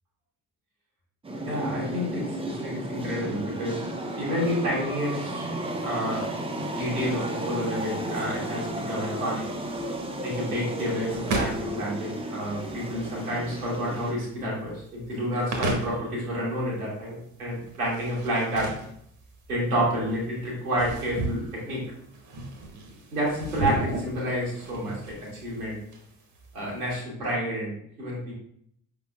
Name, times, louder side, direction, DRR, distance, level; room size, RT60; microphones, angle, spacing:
sound 1, 1.2-14.1, right 1 dB, 15° right, 0.7 m, -33 dB
voice 1, 1.5-2.4 2.6-3.8 4.2-5.5 5.8-6.4 6.7-9.4 10.2-18.7 19.5-21.8 23.1-25.8 26.5-27.7 28.0-28.3, equal, 85° right, -6 dB, 1.6 m, -29 dB
sound 2, 7.7-26.9, right 2 dB, 45° right, 1.1 m, -36 dB
5.3 x 3.8 x 2.4 m, 0.68 s
figure-of-eight pair, 45°, 43 cm